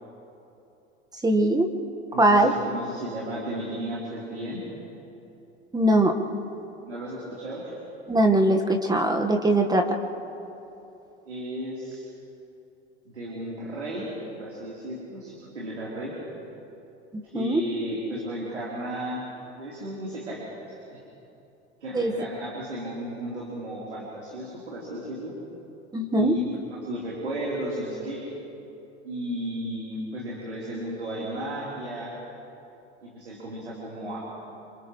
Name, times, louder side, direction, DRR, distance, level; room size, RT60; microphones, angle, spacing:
voice 1, 1.2-1.7 2.2-2.5 5.7-6.2 8.1-9.9 17.3-17.6 21.9-22.1 25.9-26.3, right 1 dB, 10° right, 3 dB, 1.7 m, -21 dB
voice 2, 2.1-4.6 6.9-7.8 11.3-12.1 13.1-14.1 14.4-16.1 17.2-19.2 19.6-21.0 21.8-25.3 26.1-28.2 29.0-32.1 33.0-34.2, equal, 80° right, -6 dB, 4.2 m, -34 dB
28.5 x 27.5 x 3.3 m, 2.8 s
figure-of-eight pair, 75°, 33 cm